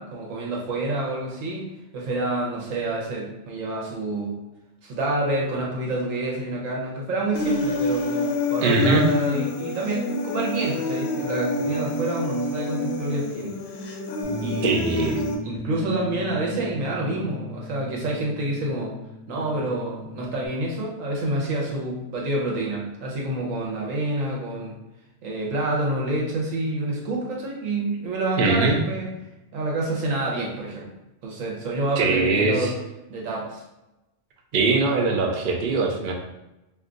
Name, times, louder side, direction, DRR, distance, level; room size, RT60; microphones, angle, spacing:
voice 1, 0.0-1.7 1.9-4.4 4.8-13.5 14.4-15.1 15.4-18.9 19.3-24.7 25.2-29.1 29.5-30.9 31.2-32.8 33.1-33.6, right 2 dB, 80° right, -2 dB, 1.2 m, -28 dB
Human voice, 7.4-15.3, left 2 dB, 65° left, 0.7 m, -27 dB
voice 2, 8.6-9.1 14.6-15.1 28.4-28.8 32.0-32.7 34.5-36.1, right 3 dB, 60° right, 1 dB, 0.5 m, -21 dB
Bass guitar, 14.2-20.5, left 1 dB, 20° right, 1.2 m, -38 dB
2.6 x 2.3 x 3.7 m, 0.98 s
omnidirectional pair, 1.3 m